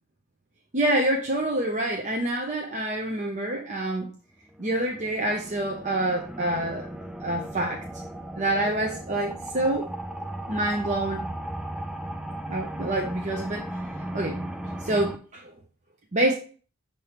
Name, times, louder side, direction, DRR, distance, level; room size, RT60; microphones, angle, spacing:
voice 1, 0.7-4.1 4.6-6.9 7.2-7.8 8.4-9.9 10.5-11.2 12.5-13.6 14.1-14.4 14.8-15.5 16.1-16.3, right 1 dB, 35° right, 1 dB, 0.7 m, -27 dB
sound 1, 4.5-15.2, right 1 dB, 5° right, 0.4 m, -36 dB
6.8 x 3.0 x 5.0 m, 0.40 s
head